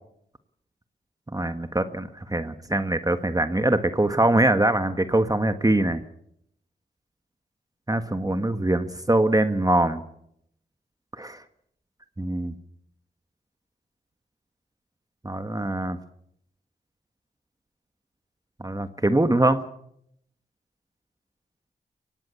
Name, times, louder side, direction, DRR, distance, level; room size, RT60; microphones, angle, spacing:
voice 1, 1.3-6.0 7.9-10.0 11.2-11.4 12.2-12.5 15.2-16.0 18.6-19.7, right 1 dB, 20° right, 9 dB, 1.5 m, -23 dB
23.0 x 18.0 x 7.0 m, 0.73 s
cardioid pair, 45°, 19 cm